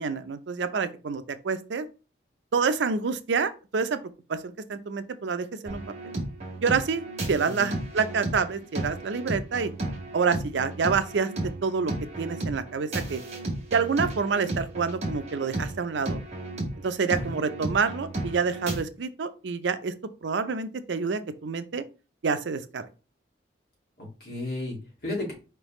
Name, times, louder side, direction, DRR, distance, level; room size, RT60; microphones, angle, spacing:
voice 1, 0.0-1.8 2.5-4.0 4.3-6.1 6.6-9.7 10.1-11.3 11.6-13.2 13.7-16.2 16.8-19.9 20.2-21.8 22.2-22.8, right 5 dB, 80° right, 0.5 m, -28 dB
sound 1, 5.7-18.8, right 1 dB, 35° right, 1.5 m, -34 dB
voice 2, 7.4-7.8 17.1-17.4 24.0-25.3, left 2 dB, 55° left, 2.3 m, -34 dB
4.7 x 3.4 x 3.1 m
head